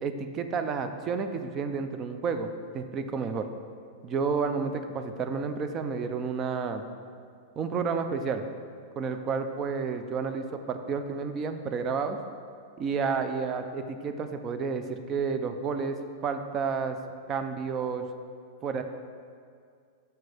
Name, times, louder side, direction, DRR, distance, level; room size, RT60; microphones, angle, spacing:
voice 1, 0.0-2.5 2.7-3.5 4.0-6.8 7.6-8.4 9.0-12.2 12.8-16.0 16.2-17.0 17.3-18.0 18.6-18.8, right 5 dB, 20° right, 8 dB, 0.4 m, -30 dB
8.0 x 5.5 x 3.4 m, 2.2 s
supercardioid pair, 170°, 0 cm